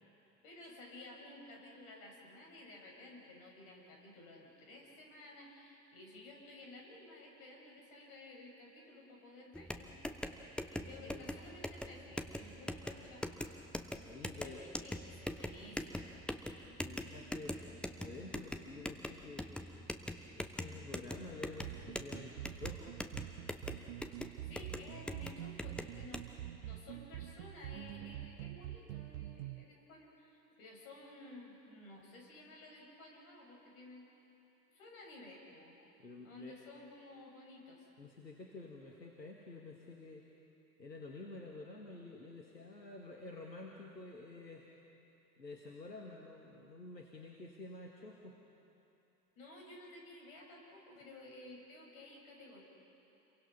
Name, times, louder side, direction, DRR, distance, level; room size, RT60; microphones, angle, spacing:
voice 1, 0.4-9.9 10.7-13.5 14.3-16.2 24.5-34.1 34.7-35.7 36.2-37.9 49.4-52.6, left 2 dB, 55° left, 0 dB, 6.6 m, -54 dB
sound 1, 9.5-26.2, left 1 dB, ahead, 1.0 m, -43 dB
voice 2, 14.0-14.6 16.8-17.7 18.0-19.5 20.0-23.0 36.0-36.6 38.0-40.3 40.8-44.7 45.4-48.4, left 2 dB, 85° left, -1 dB, 2.0 m, -50 dB
sound 2, 21.6-29.6, right 14 dB, 50° right, 0.7 m, -46 dB
29.5 x 23.0 x 5.6 m, 2.9 s
figure-of-eight pair, 80°, 49 cm